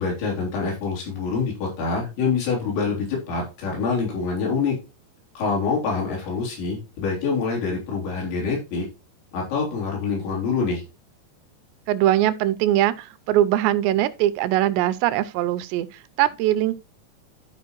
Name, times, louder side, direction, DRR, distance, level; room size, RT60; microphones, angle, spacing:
voice 1, 0.0-4.8 5.4-8.9 9.3-10.8, left 4 dB, 80° left, 5.4 m, -26 dB
voice 2, 11.9-16.8, right 13 dB, 85° right, 2.6 m, -21 dB
13.0 x 5.0 x 3.0 m
omnidirectional pair, 5.0 m